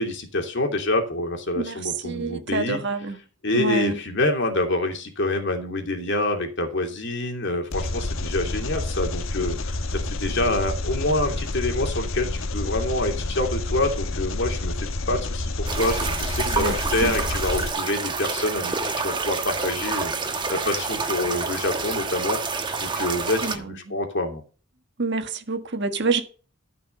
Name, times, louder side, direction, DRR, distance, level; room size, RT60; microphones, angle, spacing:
voice 1, 0.0-2.8 3.4-24.4, left 2 dB, 60° left, 2.9 m, -27 dB
voice 2, 2.0-3.2 3.5-4.0 16.5-16.7 17.0-17.2 23.4-23.9 25.0-26.2, right 3 dB, 55° right, 1.5 m, -27 dB
Engine, 7.7-17.7, left 2 dB, 75° left, 1.1 m, -29 dB
sound 1, 15.7-23.6, right 4 dB, 20° right, 1.3 m, -28 dB
14.0 x 5.9 x 5.4 m
head